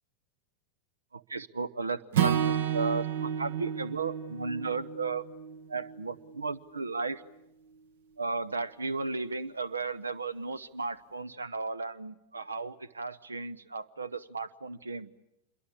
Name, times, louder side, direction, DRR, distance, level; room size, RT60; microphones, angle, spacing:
voice 1, 1.1-5.2 5.7-7.2 8.2-15.1, right 4 dB, 75° right, 20 dB, 0.9 m, -35 dB
Acoustic guitar / Strum, 2.1-6.4, right 9 dB, 60° right, 1.3 m, -31 dB
26.5 x 22.5 x 8.6 m, 0.89 s
figure-of-eight pair, 90°, 0 cm